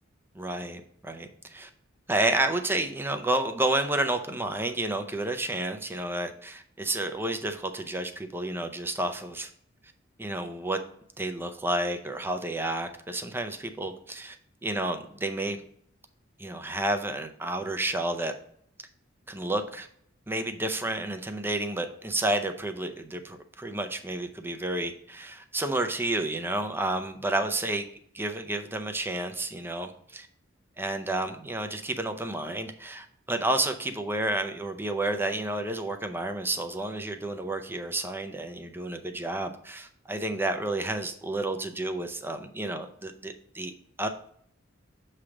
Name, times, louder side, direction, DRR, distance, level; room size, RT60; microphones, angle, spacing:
voice 1, 0.3-1.7 2.1-9.5 10.2-10.8 11.2-14.4 14.6-15.6 16.4-18.3 19.3-19.9 20.3-27.8 28.1-30.3 30.8-43.7 44.0-44.1, right 1 dB, 10° right, 7 dB, 0.5 m, -30 dB
7.2 x 3.3 x 4.9 m, 0.65 s
head